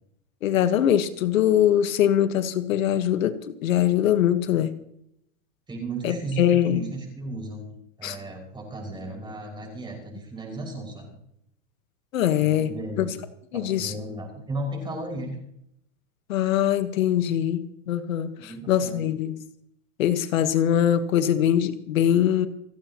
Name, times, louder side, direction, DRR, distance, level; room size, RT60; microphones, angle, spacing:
voice 1, 0.4-3.3 3.6-4.7 6.0-6.8 8.0-8.2 12.1-12.7 13.0-13.1 13.5-13.9 16.3-19.4 20.0-22.5, left 10 dB, 80° left, 10 dB, 1.4 m, -22 dB
voice 2, 5.7-11.1 12.4-13.2 13.5-15.4 18.4-19.1, right 2 dB, 10° right, 0 dB, 5.7 m, -35 dB
29.0 x 11.5 x 3.0 m, 0.76 s
supercardioid pair, 145°, 39 cm